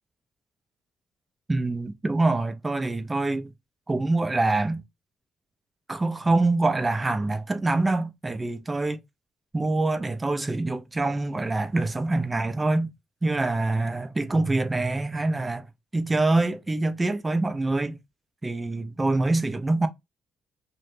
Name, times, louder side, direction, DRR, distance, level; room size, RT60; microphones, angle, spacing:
voice 1, 1.5-3.5 3.9-4.8 5.9-9.0 9.5-12.9 13.2-15.7 15.9-18.0 18.4-19.9, right 2 dB, 20° right, 0.5 m, -25 dB
2.5 x 2.1 x 3.1 m
cardioid pair, 90°, 0 cm